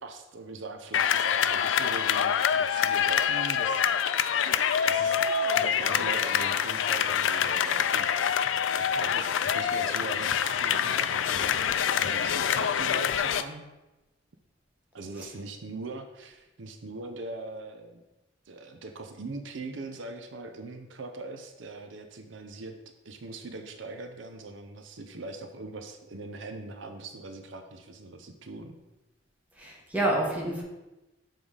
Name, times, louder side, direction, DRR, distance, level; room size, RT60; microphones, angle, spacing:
voice 1, 0.0-4.3 4.8-5.3 5.5-11.7 12.0-13.7 14.9-18.0 18.5-22.7 23.0-28.8, right 3 dB, 80° right, 6 dB, 0.6 m, -41 dB
sound 1, 0.9-13.4, left 8 dB, 85° left, 0.4 m, -26 dB
voice 2, 29.6-30.6, right 1 dB, 10° right, -3 dB, 1.3 m, -28 dB
7.1 x 3.8 x 4.8 m, 1.0 s
head